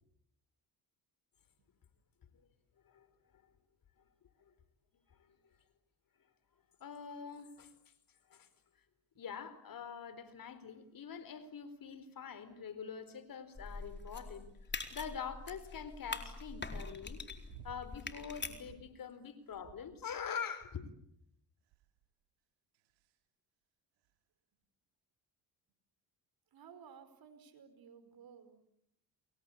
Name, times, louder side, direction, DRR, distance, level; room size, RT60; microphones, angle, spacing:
voice 1, 6.8-7.7 8.3-8.5 9.2-14.5 14.9-17.2 17.6-20.9, left 7 dB, 55° left, 4.3 m, -45 dB
sound 1, 13.6-18.7, left 3 dB, 25° left, 4.2 m, -44 dB
sound 2, 17.5-17.9 18.4-18.9 19.5-20.1 20.6-21.1 21.7-22.0 22.7-23.1 24.1-24.2, right 11 dB, 90° right, 2.8 m, -56 dB
voice 2, 26.5-28.6, right 7 dB, 60° right, 5.2 m, -56 dB
29.5 x 22.5 x 8.6 m
supercardioid pair, 70°, 40 cm